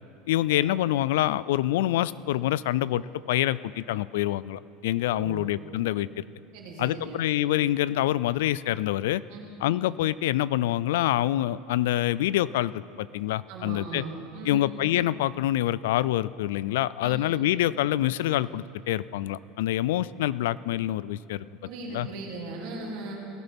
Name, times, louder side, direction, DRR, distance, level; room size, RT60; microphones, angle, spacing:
voice 1, 0.3-6.2 6.8-9.2 9.6-14.0 14.5-21.4 21.9-22.1, left 14 dB, 85° left, 19 dB, 0.3 m, -26 dB
voice 2, 5.0-5.5 6.5-7.2 9.3-9.5 13.5-14.6 17.0-17.2 21.6-23.2, right 3 dB, 55° right, -2 dB, 2.8 m, -38 dB
18.5 x 16.0 x 3.6 m, 2.8 s
supercardioid pair, 170°, 0 cm